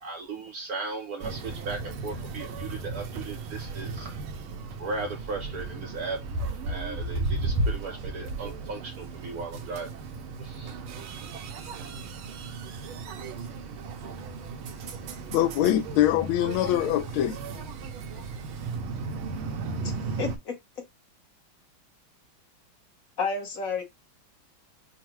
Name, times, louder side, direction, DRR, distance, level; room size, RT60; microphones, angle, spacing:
voice 1, 0.0-4.1 4.8-6.2 6.6-9.9 10.4-10.8 11.4-12.0, right 3 dB, 70° right, 0.9 m, -37 dB
sound 1, 1.2-20.4, right 3 dB, 85° right, 1.6 m, -35 dB
voice 2, 15.3-17.4, left 12 dB, 85° left, 1.4 m, -23 dB
voice 3, 19.8-20.8 23.2-23.8, left 5 dB, 50° left, 1.2 m, -32 dB
5.8 x 2.2 x 3.0 m
omnidirectional pair, 2.2 m